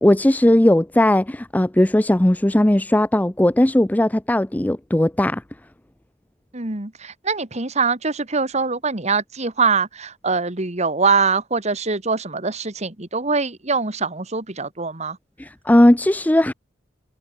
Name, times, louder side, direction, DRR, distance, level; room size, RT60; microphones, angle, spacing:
voice 1, 0.0-5.4 15.4-16.5, left 1 dB, 10° left, 0.5 m, -17 dB
voice 2, 6.5-15.2, right 4 dB, 35° right, 1.8 m, -23 dB
head